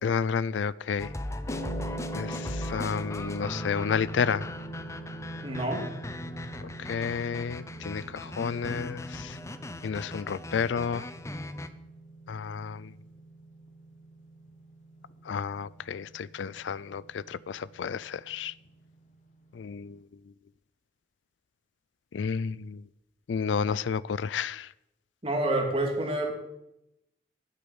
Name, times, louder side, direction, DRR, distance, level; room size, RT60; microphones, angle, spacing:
voice 1, 0.0-1.1 2.1-4.5 6.9-9.3 9.8-11.0 12.3-12.9 15.3-18.5 19.6-20.0 22.1-22.8 23.3-24.7, left 6 dB, 85° left, 0.4 m, -31 dB
sound 1, 1.0-11.7, left 1 dB, 15° left, 0.7 m, -39 dB
sound 2, 1.5-19.7, right 2 dB, 40° left, 1.7 m, -43 dB
voice 2, 5.4-5.8 25.2-26.3, right 1 dB, 30° right, 2.6 m, -28 dB
10.0 x 8.5 x 8.8 m
head